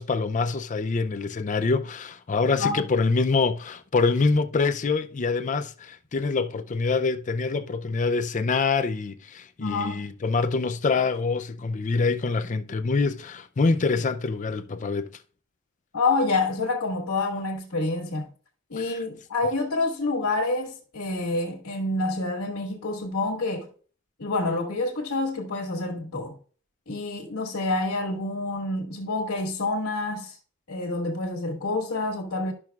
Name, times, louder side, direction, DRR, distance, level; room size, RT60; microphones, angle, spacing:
voice 1, 0.0-15.1 18.8-19.0, left 4 dB, 35° left, 0.4 m, -25 dB
voice 2, 9.6-10.0 15.9-18.3 18.7-23.7 24.2-26.3 26.9-30.4 30.7-32.5, left 2 dB, 85° left, 1.5 m, -27 dB
12.0 x 6.1 x 2.3 m
head